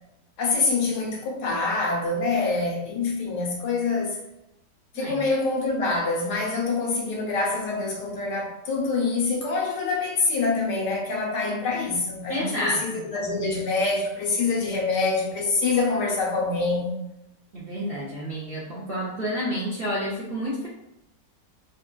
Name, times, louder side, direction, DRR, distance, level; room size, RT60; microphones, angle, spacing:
voice 1, 0.4-4.2 4.9-16.9, left 3 dB, 85° left, 1.4 m, -25 dB
voice 2, 12.3-13.0 17.5-20.7, equal, 75° right, 0.5 m, -29 dB
4.0 x 2.2 x 2.2 m
omnidirectional pair, 1.9 m